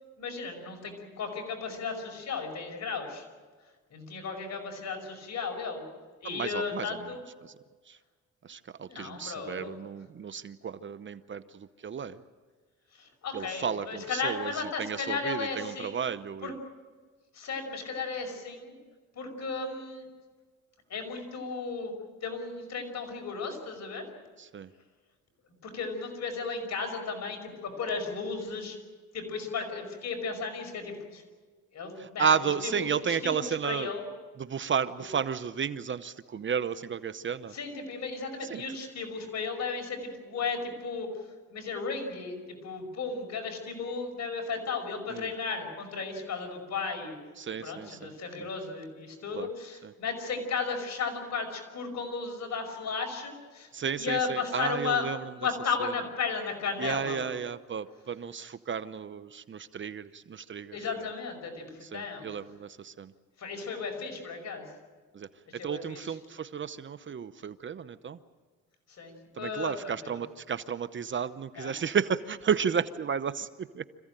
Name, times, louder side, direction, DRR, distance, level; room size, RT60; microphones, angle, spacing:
voice 1, 0.2-3.3 3.9-5.8 6.2-7.2 8.9-9.7 12.9-16.1 16.4-16.5 17.3-18.8 19.1-20.1 20.9-21.9 22.2-24.1 25.6-28.8 29.1-31.2 31.7-32.3 32.6-34.0 35.0-35.1 37.5-47.2 47.6-53.7 54.0-57.4 60.7-62.3 63.4-64.7 65.5-66.2 68.9-70.2 71.6-71.8, left 4 dB, 60° left, 4 dB, 5.6 m, -35 dB
voice 2, 6.2-6.9 7.9-8.0 8.5-12.2 13.3-14.5 14.8-16.5 24.4-24.7 32.2-33.9 34.4-37.5 38.5-38.6 45.1-45.3 47.4-48.0 49.3-49.5 49.8-49.9 53.7-55.2 56.8-60.8 61.9-63.1 65.1-65.3 65.6-68.2 69.4-73.8, right 7 dB, 40° right, 13 dB, 0.9 m, -32 dB
26.0 x 15.5 x 9.0 m, 1.4 s
cardioid pair, 90°, 30 cm